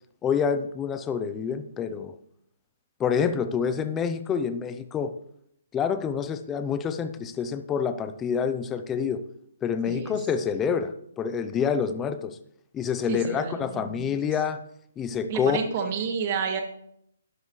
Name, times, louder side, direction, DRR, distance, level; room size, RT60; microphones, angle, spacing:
voice 1, 0.2-2.2 3.0-5.1 5.7-9.2 9.6-12.4 12.7-14.6 15.0-15.6, left 7 dB, 15° left, 10 dB, 0.6 m, -27 dB
voice 2, 9.9-10.2 13.1-14.2 15.3-16.6, right 6 dB, 35° right, 3 dB, 2.1 m, -30 dB
12.5 x 10.5 x 3.2 m, 0.72 s
hypercardioid pair, 160°, 0 cm